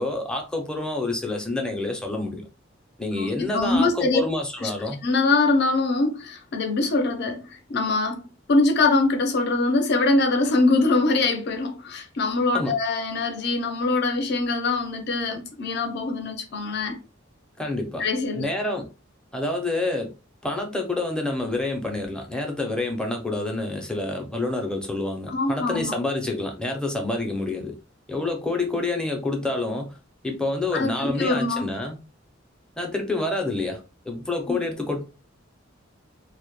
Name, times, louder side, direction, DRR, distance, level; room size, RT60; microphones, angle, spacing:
voice 1, 0.0-2.5 3.0-5.0 12.5-12.8 17.6-18.1 18.4-18.9 19.3-20.1 20.4-27.8 28.1-30.0 30.2-32.0 32.8-35.0, left 2 dB, 5° left, 0.5 m, -28 dB
voice 2, 3.1-4.2 4.6-4.7 5.0-8.2 8.5-17.0 18.0-18.4 25.3-25.9 30.7-31.6 34.5-34.6, left 3 dB, 60° left, 0.5 m, -23 dB
2.1 x 2.1 x 3.0 m
head